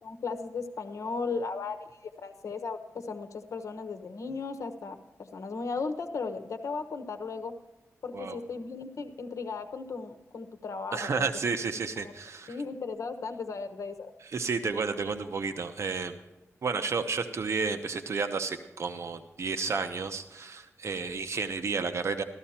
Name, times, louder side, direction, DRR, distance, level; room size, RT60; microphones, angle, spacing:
voice 1, 0.0-1.8 2.2-7.5 8.0-11.3 12.0-12.1 12.5-14.1, left 4 dB, 80° left, 8 dB, 1.2 m, -36 dB
voice 2, 10.9-12.6 14.3-16.2 16.6-22.2, right 4 dB, 60° right, 7 dB, 0.9 m, -31 dB
14.0 x 14.0 x 4.3 m, 1.1 s
wide cardioid pair, 140°, 5 cm